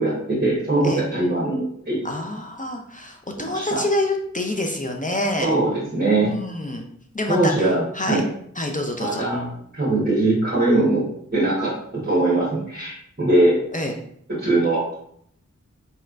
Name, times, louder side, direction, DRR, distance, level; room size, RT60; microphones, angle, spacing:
voice 1, 0.0-2.0 3.4-3.8 5.4-6.3 7.3-8.2 9.0-11.0 11.3-13.6 14.4-14.9, right 2 dB, 35° right, -7 dB, 1.3 m, -21 dB
voice 2, 2.0-5.5 6.2-6.8 7.1-7.7 7.9-8.2 8.6-9.2 13.7-13.9, left 1 dB, 30° left, 2 dB, 0.5 m, -27 dB
4.2 x 3.2 x 2.5 m, 0.68 s
wide cardioid pair, 55°, 29 cm